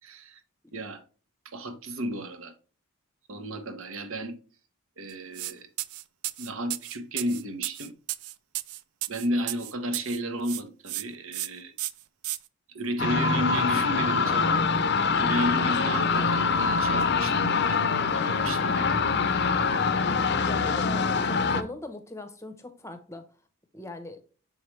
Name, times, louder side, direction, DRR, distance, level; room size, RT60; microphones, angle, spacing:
voice 1, 0.0-0.4 0.7-1.0 1.4-2.5 3.3-4.4 5.0-5.7 6.4-7.9 9.1-11.7 12.7-14.6 15.2-17.8 18.1-19.0, equal, 70° right, 0.9 m, -33 dB
sound 1, 5.3-5.5 5.8-10.2 10.4-11.0 11.3-11.5 11.8-12.4, right 15 dB, 85° right, 0.4 m, -33 dB
sound 2, 13.0-21.6, left 4 dB, 50° left, 0.6 m, -24 dB
voice 2, 20.4-23.2 23.7-24.2, left 2 dB, 15° left, 0.8 m, -40 dB
6.5 x 4.7 x 3.2 m
head